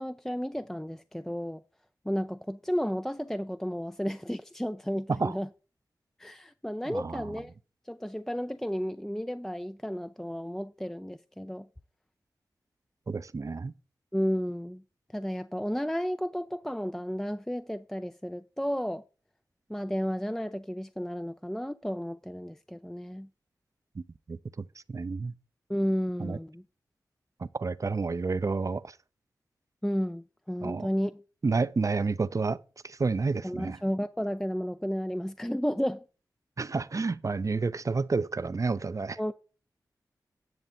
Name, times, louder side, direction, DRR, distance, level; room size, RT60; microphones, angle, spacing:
voice 1, 0.0-1.6 2.0-5.5 6.2-7.5 7.8-11.7 14.1-14.8 15.1-19.0 19.7-23.3 25.7-26.6 29.8-31.1 33.4-36.0 39.2-39.3, equal, 5° left, 0.5 m, -32 dB
voice 2, 6.9-7.3 13.1-13.7 24.0-24.1 24.3-25.3 26.2-26.4 27.4-28.9 30.6-30.9 31.4-32.6 32.8-33.8 36.6-39.2, right 4 dB, 45° right, 0.6 m, -30 dB
11.0 x 6.7 x 4.2 m
cardioid pair, 40°, 7 cm